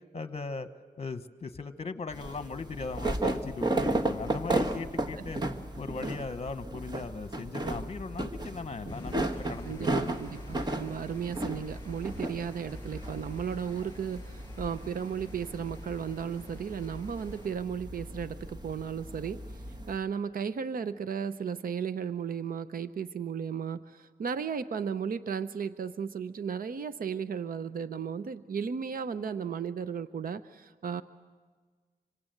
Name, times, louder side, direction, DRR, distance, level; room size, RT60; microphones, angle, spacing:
voice 1, 0.1-0.7 1.0-5.4 5.8-10.0, left 4 dB, 40° left, 11 dB, 1.1 m, -38 dB
sound 1, 2.1-20.0, right 2 dB, 25° right, 1.3 m, -35 dB
sound 2, 8.9-17.5, left 2 dB, 15° left, 6.4 m, -51 dB
voice 2, 9.6-31.0, right 7 dB, 65° right, 12 dB, 0.7 m, -35 dB
25.5 x 25.5 x 7.8 m, 1.5 s
wide cardioid pair, 145°, 16 cm